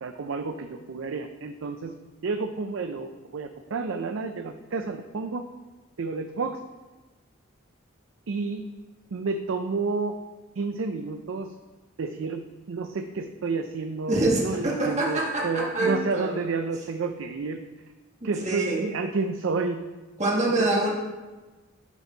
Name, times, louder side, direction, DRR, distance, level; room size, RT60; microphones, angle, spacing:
voice 1, 0.0-1.9 2.2-5.4 6.0-6.6 8.3-8.7 9.1-10.2 10.6-11.5 12.0-12.4 12.7-17.6 18.2-19.8 20.3-20.5, right 4 dB, 70° right, 7 dB, 0.4 m, -30 dB
voice 2, 14.1-16.3 18.2-18.9 20.2-20.9, right 2 dB, 35° right, -4 dB, 1.3 m, -25 dB
11.5 x 4.3 x 3.9 m, 1.2 s
head